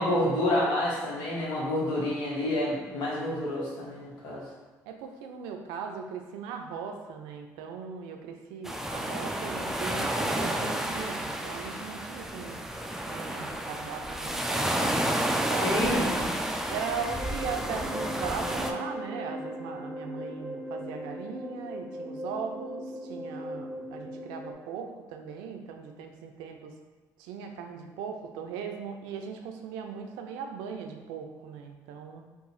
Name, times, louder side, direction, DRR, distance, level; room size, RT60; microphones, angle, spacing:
voice 1, 0.0-4.4 15.6-16.4, left 1 dB, 75° left, -5 dB, 1.1 m, -28 dB
voice 2, 4.9-12.6 13.1-16.0 16.7-26.7 27.2-32.3, right 6 dB, 85° right, 4 dB, 0.4 m, -39 dB
sound 1, 8.6-18.7, right 1 dB, 5° right, 0.4 m, -31 dB
sound 2, 16.5-24.5, equal, 25° right, 0.8 m, -38 dB
2.7 x 2.4 x 4.0 m, 1.3 s
supercardioid pair, 70°, 8 cm